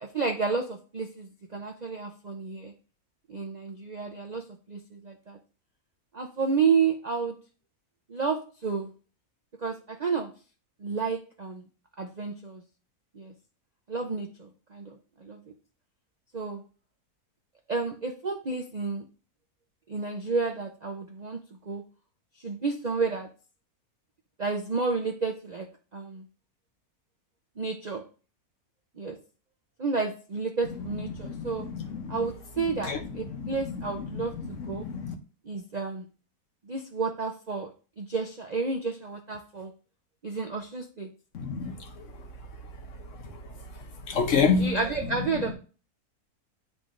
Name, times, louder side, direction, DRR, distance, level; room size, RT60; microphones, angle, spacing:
voice 1, 0.0-2.7 3.3-4.4 4.7-5.4 6.1-7.3 8.1-8.9 9.6-10.3 10.8-11.6 12.0-12.6 13.2-13.3 13.9-14.9 15.2-15.4 16.3-16.6 17.7-19.0 19.9-21.4 21.7-21.8 22.4-23.3 24.4-25.7 25.9-26.2 27.6-28.0 29.0-29.2 29.8-31.7 32.1-34.8 35.5-36.0 36.7-37.7 38.0-39.7 40.2-41.1 44.5-45.5, right 4 dB, 55° right, 0.5 m, -31 dB
voice 2, 31.2-32.0 32.9-33.0 33.4-33.5 34.6-35.1 41.3-41.7 44.1-44.8, left 5 dB, 60° left, 1.1 m, -27 dB
10.0 x 3.7 x 2.5 m
omnidirectional pair, 1.6 m